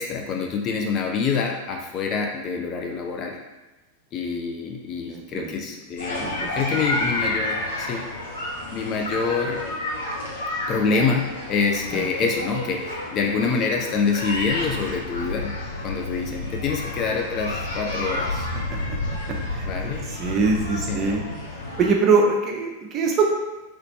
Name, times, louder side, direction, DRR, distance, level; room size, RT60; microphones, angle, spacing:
voice 1, 0.0-3.4 4.1-6.3 6.5-8.0 8.7-9.6 10.7-15.5 15.8-18.5 19.6-20.0 20.9-21.2, left 5 dB, 35° left, 1 dB, 0.4 m, -26 dB
voice 2, 5.1-5.5 6.2-6.5 11.9-12.1 18.7-18.8 19.5-19.7 20.1-21.2 21.8-23.3, right 4 dB, 30° right, 0 dB, 0.6 m, -22 dB
sound 1, 6.0-21.9, left 2 dB, 70° left, 1.0 m, -30 dB
3.0 x 3.0 x 2.9 m, 1.1 s
figure-of-eight pair, 90°, 0 cm